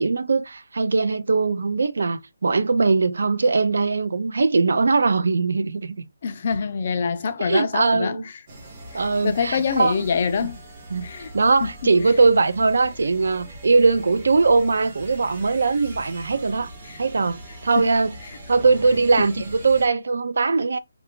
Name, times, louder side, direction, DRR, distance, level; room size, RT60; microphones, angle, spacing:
voice 1, 0.0-6.0 7.4-8.2 8.9-10.0 10.9-11.1 11.3-16.7 17.0-18.1 18.5-20.8, right 4 dB, 55° right, 0.4 m, -20 dB
voice 2, 6.2-8.2 8.9-10.6 11.0-11.3 11.6-11.7 16.9-17.0 17.8-17.9 19.2-19.3, left 6 dB, 30° left, 0.3 m, -25 dB
sound 1, 8.5-19.9, right 1 dB, 20° right, 0.7 m, -41 dB
3.2 x 2.4 x 3.6 m
hypercardioid pair, 180°, 0 cm